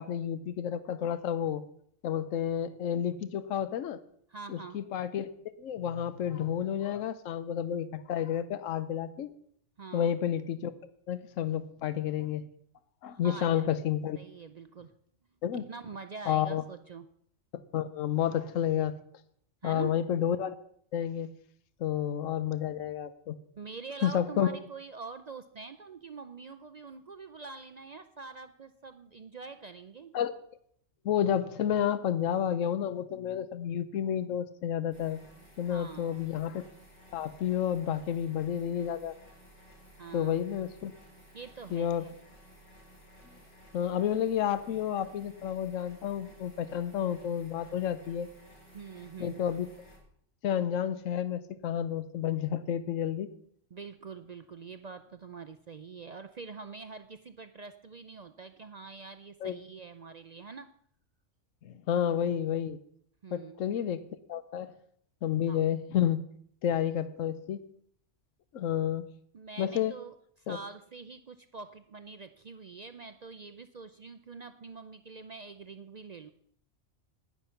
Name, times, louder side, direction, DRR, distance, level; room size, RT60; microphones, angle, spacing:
voice 1, 0.0-1.6 2.0-4.0 4.5-5.3 5.6-9.3 9.9-10.7 11.1-12.4 13.0-14.2 15.4-15.6 16.3-16.6 17.5-18.9 19.6-20.6 20.9-21.3 21.8-23.3 24.0-24.5 30.1-30.3 31.0-35.2 35.6-36.6 37.1-39.1 40.1-40.9 41.7-42.0 43.7-48.3 49.2-49.7 50.4-53.3 59.4-59.5 61.6-62.8 63.3-64.0 64.3-64.7 65.2-66.2 66.6-67.6 68.5-69.1 69.6-69.9 70.5-70.6, left 9 dB, 80° left, 14 dB, 1.1 m, -30 dB
voice 2, 4.3-4.8 9.8-10.2 13.1-13.7 14.2-14.9 15.5-17.1 19.6-19.9 23.6-30.1 35.7-36.3 40.0-40.5 41.3-42.1 48.7-49.4 53.7-60.7 63.2-63.7 65.5-65.6 69.3-76.3, right 4 dB, 55° right, 9 dB, 0.4 m, -45 dB
sound 1, 34.9-50.0, equal, 60° left, 4.4 m, -56 dB
10.5 x 10.0 x 5.7 m, 0.65 s
omnidirectional pair, 1.3 m